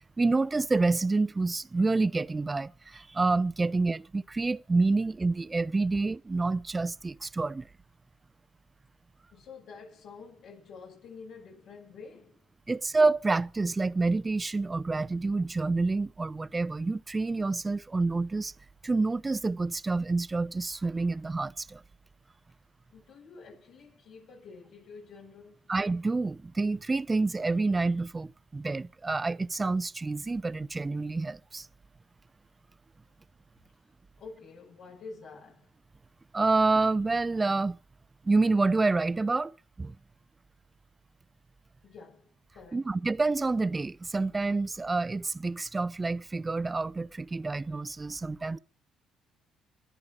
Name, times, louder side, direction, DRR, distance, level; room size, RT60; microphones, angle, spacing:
voice 1, 0.2-7.7 12.7-18.5 18.8-21.8 25.7-31.7 36.3-37.8 38.2-39.5 39.8-40.0 42.7-48.6, right 3 dB, 25° right, 0.8 m, -28 dB
voice 2, 9.3-12.5 22.9-25.7 34.2-35.7 41.8-42.9, left 4 dB, 70° left, 6.9 m, -48 dB
25.0 x 10.5 x 5.0 m
supercardioid pair, 65°, 0 cm